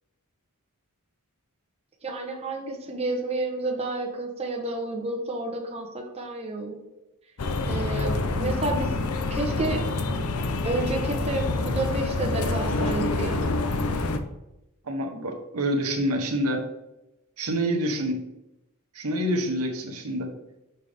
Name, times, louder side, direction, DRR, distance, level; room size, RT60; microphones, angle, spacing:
voice 1, 2.0-6.8 7.7-8.9 9.3-9.8 10.6-13.5, right 2 dB, 30° right, 0 dB, 1.0 m, -30 dB
sound 1, 7.4-14.2, left 2 dB, 80° left, 0.6 m, -27 dB
voice 2, 14.9-16.6 17.4-18.2 18.9-20.3, equal, 75° right, 2 dB, 1.0 m, -27 dB
6.5 x 5.5 x 3.4 m, 0.93 s
head